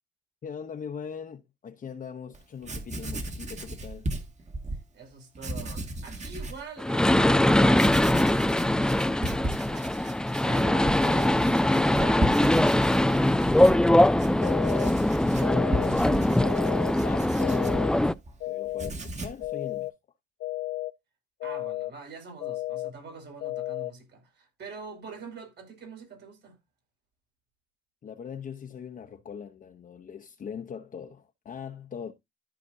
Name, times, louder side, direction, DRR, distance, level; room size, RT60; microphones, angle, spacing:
voice 1, 0.4-4.1 15.5-18.1 18.5-19.9 28.0-32.1, left 7 dB, 45° left, 0.9 m, -40 dB
Writing, 2.3-2.4 2.6-4.8 5.3-6.6 7.1-7.2 7.7-18.4 18.7-19.5, right 1 dB, 35° right, 2.1 m, -36 dB
voice 2, 4.9-13.7 21.4-26.6, right 4 dB, 60° right, 5.7 m, -44 dB
sound 1, 6.8-18.1, left 1 dB, 5° left, 0.4 m, -22 dB
sound 2, 14.4-14.9 15.4-15.9 16.4-16.9 17.4-17.9 18.4-18.9 19.4-19.9 20.4-20.9 21.4-21.9 22.4-22.9 23.4-23.9, left 17 dB, 80° left, 0.7 m, -33 dB
14.0 x 5.0 x 2.7 m
cardioid pair, 90°, 20 cm